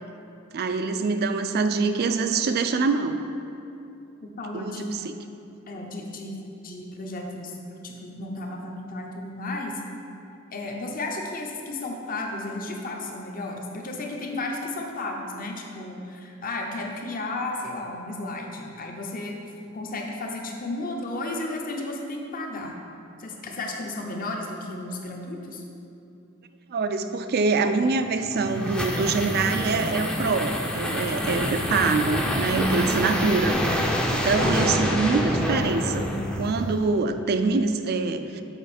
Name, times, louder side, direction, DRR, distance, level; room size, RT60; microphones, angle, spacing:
voice 1, 0.5-3.2 4.5-5.1 26.7-33.8 34.1-36.1 36.4-38.4, right 4 dB, 50° right, 8 dB, 0.4 m, -25 dB
voice 2, 4.2-4.9 5.7-7.6 7.8-9.8 10.5-19.4 19.7-22.8 23.2-25.6 32.5-32.9, left 2 dB, 45° left, 1 dB, 0.8 m, -33 dB
sound 1, 28.1-36.9, equal, 5° left, 0.5 m, -27 dB
7.0 x 5.1 x 4.2 m, 2.8 s
head